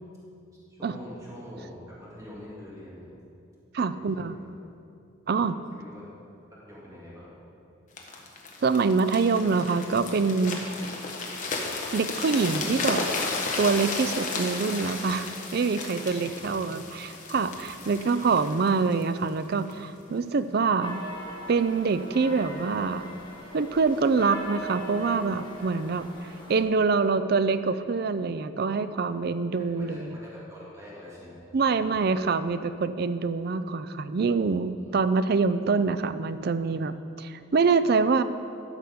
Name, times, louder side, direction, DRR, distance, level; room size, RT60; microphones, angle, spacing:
voice 1, 0.7-3.2 3.9-4.5 5.7-6.1 6.6-7.4 16.2-16.9 17.9-18.0 28.8-29.1 29.5-32.1 34.8-35.0, equal, 15° right, -7 dB, 2.1 m, -45 dB
voice 2, 3.7-4.4 5.3-5.5 8.6-10.8 11.9-13.1 13.6-21.0 21.5-23.1 23.5-30.2 31.5-38.2, right 4 dB, 50° right, 12 dB, 0.4 m, -25 dB
sound 1, 8.0-19.8 20.4-20.6, left 3 dB, 35° left, 1.1 m, -34 dB
sound 2, 20.8-26.6, right 1 dB, 20° left, 1.6 m, -40 dB
12.0 x 6.6 x 5.1 m, 2.6 s
head